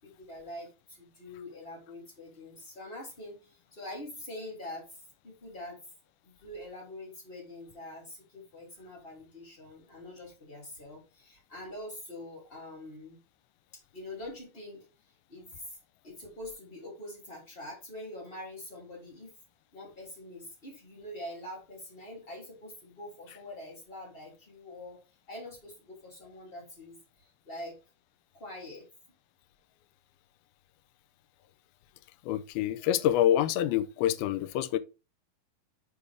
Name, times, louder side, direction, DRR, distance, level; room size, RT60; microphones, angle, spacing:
voice 1, 0.0-5.8 6.2-13.2 13.9-14.9 15.3-15.8 16.0-19.3 19.7-25.0 25.3-27.8 28.3-28.9, left 1 dB, 15° left, 2.4 m, -44 dB
voice 2, 32.2-34.8, left 11 dB, 90° left, 2.4 m, -26 dB
7.2 x 4.8 x 3.3 m
omnidirectional pair, 4.3 m